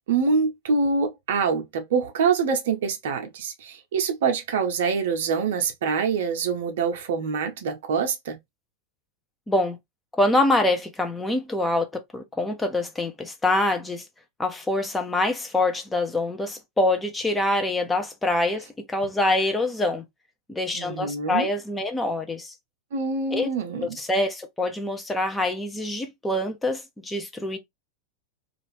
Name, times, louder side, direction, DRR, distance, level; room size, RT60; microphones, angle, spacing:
voice 1, 0.1-8.4 20.7-21.5 22.9-24.0, right 5 dB, 55° right, 0.7 m, -25 dB
voice 2, 9.5-9.8 10.1-14.0 14.4-20.0 20.5-22.5 23.3-23.5 23.8-27.6, left 2 dB, 10° left, 0.6 m, -25 dB
2.5 x 2.4 x 3.1 m
figure-of-eight pair, 90°, 0 cm